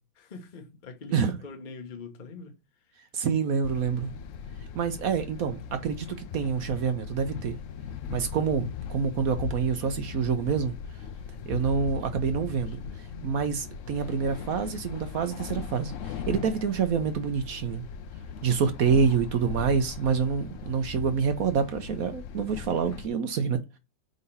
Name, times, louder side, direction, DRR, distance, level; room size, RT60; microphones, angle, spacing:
voice 1, 0.2-3.1 12.5-13.0, left 4 dB, 35° left, 0.9 m, -45 dB
voice 2, 3.1-4.1 4.7-7.6 8.1-10.8 11.5-12.8 13.2-17.8 18.4-23.8, right 6 dB, 60° right, 1.0 m, -27 dB
sound 1, 3.6-23.1, left 7 dB, 90° left, 0.6 m, -39 dB
4.8 x 3.9 x 5.5 m
omnidirectional pair, 2.0 m